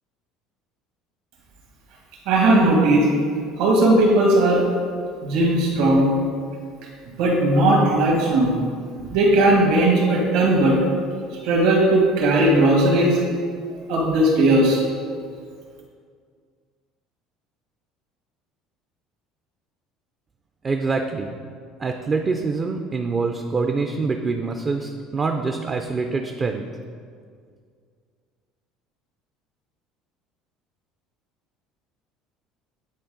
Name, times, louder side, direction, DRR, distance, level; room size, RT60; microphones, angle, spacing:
voice 1, 2.3-3.1 3.6-4.6 5.2-6.1 7.2-8.5 9.0-10.8 11.4-13.2 13.9-14.8, right 1 dB, 75° right, -1 dB, 1.9 m, -17 dB
voice 2, 20.6-21.4 21.8-26.7, right 4 dB, 20° right, 4 dB, 0.3 m, -25 dB
9.5 x 4.2 x 3.8 m, 2.1 s
cardioid pair, 150°, 0 cm